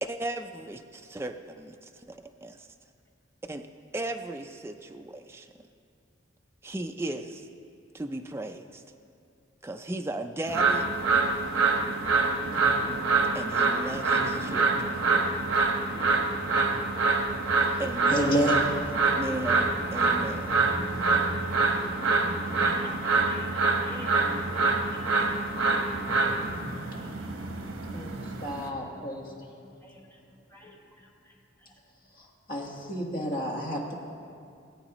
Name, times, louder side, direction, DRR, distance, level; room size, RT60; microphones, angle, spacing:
voice 1, 0.0-2.7 3.5-3.7 3.9-5.5 6.6-7.5 7.9-8.8 9.6-10.9 13.3-14.9 17.8-18.6 19.1-20.6, right 1 dB, 10° right, 5 dB, 0.3 m, -36 dB
sound 1, 10.5-28.7, right 3 dB, 85° right, 1.0 m, -26 dB
sound 2, 12.4-31.0 31.3-31.4 31.7-31.8, equal, 65° right, 2.1 m, -46 dB
voice 2, 18.1-18.5 27.9-29.3 32.5-33.9, equal, 45° left, -1 dB, 1.4 m, -30 dB
voice 3, 22.4-24.5 24.9-25.3 26.9-27.3 29.8-30.2 30.5-31.8, left 1 dB, 10° left, -3 dB, 1.1 m, -51 dB
18.0 x 8.4 x 3.0 m, 2.4 s
head